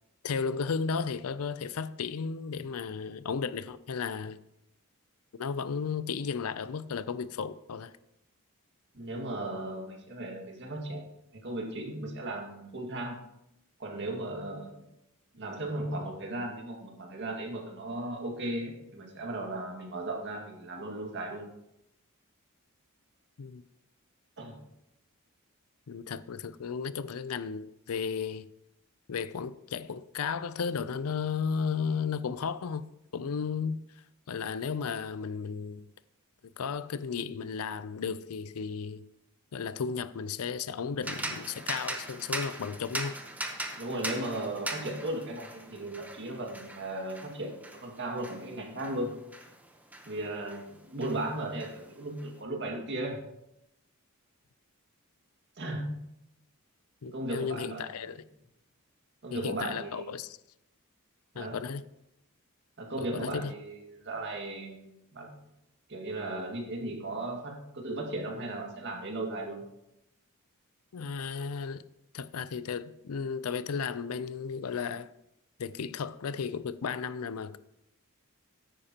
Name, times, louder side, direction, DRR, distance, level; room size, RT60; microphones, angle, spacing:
voice 1, 0.2-4.4 5.3-7.9 23.4-23.6 25.9-28.5 29.1-33.8 34.3-35.9 36.6-39.0 39.5-43.2 57.0-58.2 59.3-60.4 61.3-61.8 63.0-63.5 70.9-71.8 72.1-75.1 75.6-77.6, left 6 dB, 75° left, 0.5 m, -34 dB
voice 2, 8.9-11.1 11.3-13.2 13.8-14.7 15.3-21.5 24.4-24.6 43.7-49.1 50.1-53.2 55.6-56.0 57.1-57.9 59.2-60.1 61.3-61.6 62.8-65.4 65.9-69.6, right 1 dB, 55° right, 2.0 m, -36 dB
sound 1, 41.0-50.7 51.0-52.3, right 1 dB, 5° right, 0.9 m, -40 dB
13.0 x 10.0 x 2.9 m
head